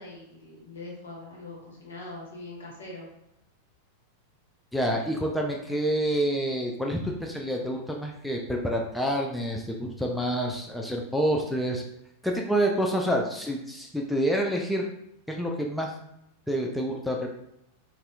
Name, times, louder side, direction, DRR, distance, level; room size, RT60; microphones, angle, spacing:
voice 1, 0.0-3.1, left 2 dB, 65° left, -3 dB, 1.2 m, -42 dB
voice 2, 4.7-11.8 12.2-14.9 15.3-15.9 16.5-17.3, equal, ahead, 0 dB, 0.3 m, -28 dB
4.1 x 2.4 x 2.2 m, 0.81 s
figure-of-eight pair, 90°, 0 cm